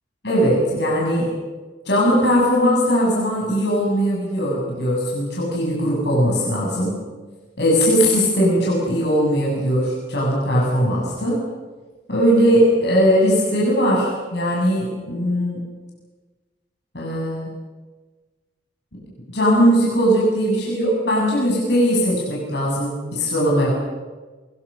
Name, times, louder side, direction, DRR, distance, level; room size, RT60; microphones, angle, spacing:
voice 1, 0.2-1.4 1.9-7.0 7.6-11.4 12.1-15.6 16.9-17.5 19.3-23.7, equal, 60° left, -4 dB, 7.5 m, -19 dB
24.0 x 23.0 x 6.5 m, 1.3 s
head